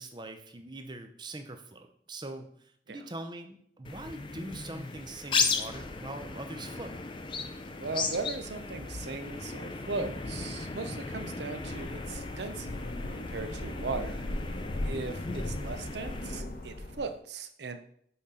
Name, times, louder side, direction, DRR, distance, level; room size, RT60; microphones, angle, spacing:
voice 1, 0.0-7.0, right 2 dB, 25° right, 6 dB, 0.6 m, -42 dB
sound 1, 3.8-16.4, left 4 dB, 25° left, 0.4 m, -36 dB
voice 2, 7.8-12.8 13.2-14.2 14.8-17.8, right 4 dB, 60° right, 8 dB, 0.6 m, -38 dB
sound 2, 11.6-17.2, left 1 dB, 50° left, 0.9 m, -38 dB
5.8 x 4.2 x 5.0 m, 0.65 s
head